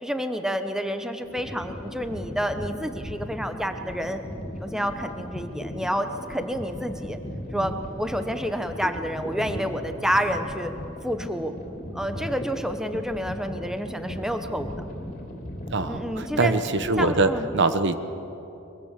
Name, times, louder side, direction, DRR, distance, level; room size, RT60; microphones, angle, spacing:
voice 1, 0.0-4.2 4.6-7.2 7.5-10.7 11.0-11.5 11.9-14.7 15.9-16.5 17.0-17.5, equal, ahead, 7 dB, 0.9 m, -29 dB
sound 1, 1.2-17.3, equal, 40° left, 3.4 m, -37 dB
voice 2, 15.7-18.0, right 3 dB, 55° right, 10 dB, 1.0 m, -24 dB
23.0 x 22.5 x 7.4 m, 2.9 s
head